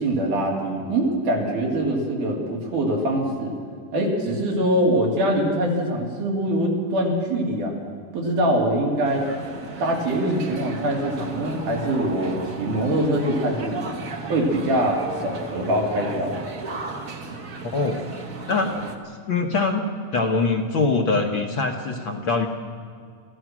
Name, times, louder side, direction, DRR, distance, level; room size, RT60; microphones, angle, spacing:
voice 1, 0.0-3.5 3.9-7.7 8.1-9.3 9.8-14.0 14.3-16.4, right 1 dB, 75° right, -1 dB, 4.8 m, -23 dB
sound 1, 9.0-19.0, right 3 dB, 40° right, 1.3 m, -35 dB
voice 2, 17.6-18.0 18.5-18.7 19.3-19.8 20.1-22.5, left 3 dB, 55° left, 3 dB, 1.4 m, -23 dB
27.0 x 15.5 x 6.2 m, 2.2 s
omnidirectional pair, 3.7 m